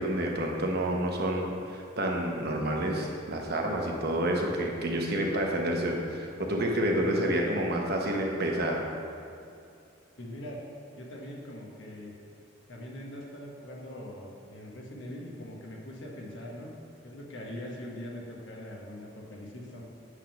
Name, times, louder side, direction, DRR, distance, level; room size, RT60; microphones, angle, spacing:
voice 1, 0.0-8.8, right 1 dB, 55° right, 0 dB, 0.9 m, -29 dB
voice 2, 10.2-10.6 11.0-12.1 12.7-16.7 17.0-19.8, left 1 dB, 70° left, -2 dB, 1.2 m, -42 dB
8.2 x 3.6 x 5.8 m, 2.4 s
head